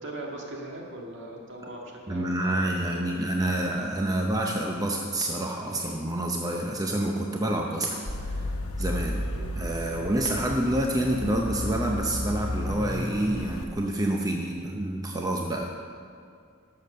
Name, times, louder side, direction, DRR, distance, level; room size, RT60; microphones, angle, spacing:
voice 1, 0.0-3.3 9.2-9.5, right 1 dB, 55° right, -1 dB, 1.9 m, -40 dB
voice 2, 2.1-8.5 8.8-9.3 9.6-15.7, right 1 dB, 15° right, 0 dB, 0.7 m, -28 dB
sound 1, 8.0-13.7, left 1 dB, 80° left, 1.1 m, -33 dB
11.5 x 6.8 x 6.6 m, 2.3 s
head